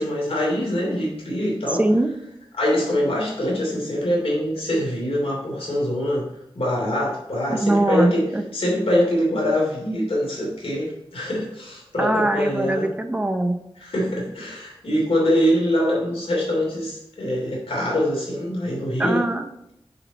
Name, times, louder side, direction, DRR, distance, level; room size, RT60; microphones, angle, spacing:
voice 1, 0.0-1.8 2.6-6.3 6.5-8.2 8.5-12.9 13.8-19.2, equal, 85° left, -3 dB, 2.9 m, -24 dB
voice 2, 1.7-2.1 7.5-8.4 12.0-13.6 19.0-19.5, right 1 dB, 15° right, 6 dB, 0.7 m, -22 dB
7.2 x 4.9 x 4.2 m, 0.81 s
wide cardioid pair, 70°, 10 cm